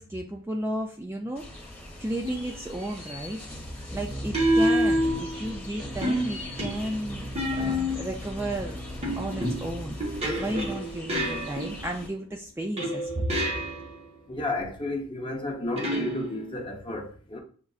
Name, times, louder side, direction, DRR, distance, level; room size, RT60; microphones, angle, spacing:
voice 1, 0.0-1.5 2.0-3.4 3.9-8.8 9.2-10.0 10.4-13.4, right 1 dB, 10° right, 0.3 m, -33 dB
sound 1, 1.3-12.1, equal, 5° left, 1.4 m, -38 dB
sound 2, 2.2-2.6 4.3-5.6 6.0-8.2 9.0-12.0 12.8-14.0 15.8-16.6, equal, 30° right, 0.9 m, -28 dB
voice 2, 14.3-17.4, left 2 dB, 25° left, 0.8 m, -32 dB
7.2 x 2.5 x 2.3 m
head